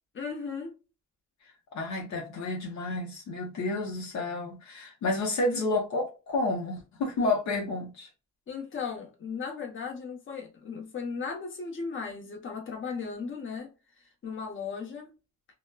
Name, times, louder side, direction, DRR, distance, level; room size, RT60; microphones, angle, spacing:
voice 1, 0.1-0.7 8.5-15.1, left 5 dB, 40° left, 0.9 m, -36 dB
voice 2, 1.7-8.1, left 2 dB, 65° left, 0.8 m, -30 dB
2.9 x 2.1 x 2.2 m
cardioid pair, 90°, 30 cm